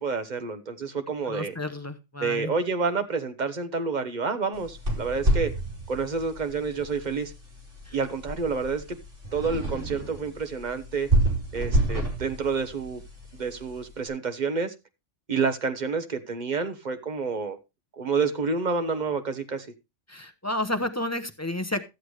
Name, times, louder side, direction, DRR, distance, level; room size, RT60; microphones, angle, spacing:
voice 1, 0.0-1.5 2.2-5.5 5.9-7.3 7.9-9.0 9.3-11.1 11.5-13.0 13.3-14.7 15.3-17.6 17.9-19.7, right 4 dB, 40° right, 1.1 m, -29 dB
voice 2, 1.3-2.5 7.9-8.0 20.1-21.9, left 1 dB, 15° left, 0.8 m, -31 dB
sound 1, 4.5-13.9, right 1 dB, 85° right, 3.7 m, -29 dB
13.0 x 7.8 x 3.2 m
omnidirectional pair, 1.2 m